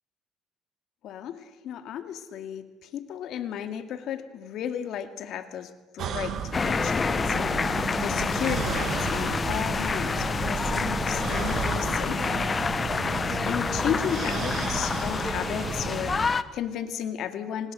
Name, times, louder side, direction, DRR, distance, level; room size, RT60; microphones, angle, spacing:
voice 1, 1.0-12.9 13.4-17.7, left 9 dB, 65° left, 8 dB, 2.1 m, -34 dB
sound 1, 6.0-16.3, right 7 dB, 60° right, 2.1 m, -33 dB
sound 2, 6.5-16.4, left 4 dB, 30° left, 0.9 m, -28 dB
26.0 x 19.5 x 6.8 m, 1.2 s
cardioid pair, 110°, 0 cm